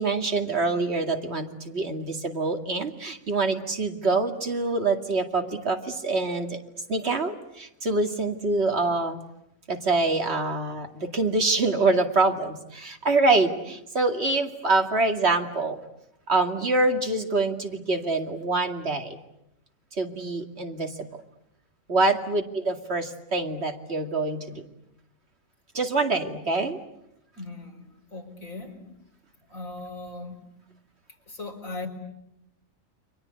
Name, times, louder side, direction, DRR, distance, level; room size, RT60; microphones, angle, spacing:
voice 1, 0.0-6.6 6.9-9.2 9.7-15.8 16.3-19.2 19.9-20.9 21.9-24.6 25.7-26.8, right 3 dB, 55° right, 4 dB, 2.6 m, -25 dB
voice 2, 27.4-28.8 29.5-30.4 31.3-31.9, left 2 dB, 90° left, 2 dB, 4.8 m, -38 dB
30.0 x 24.0 x 8.3 m, 0.83 s
omnidirectional pair, 1.4 m